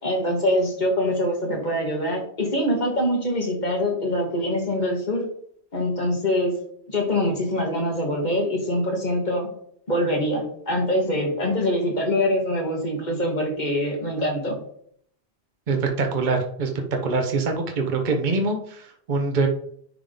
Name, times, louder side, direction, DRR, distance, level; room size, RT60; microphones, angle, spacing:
voice 1, 0.0-5.2 5.7-6.5 6.9-9.5 9.9-14.6, left 1 dB, 45° left, 0 dB, 1.9 m, -24 dB
voice 2, 15.7-16.7 17.0-19.5, right 3 dB, 50° right, 4 dB, 1.0 m, -24 dB
10.5 x 3.6 x 3.8 m, 0.63 s
omnidirectional pair, 1.1 m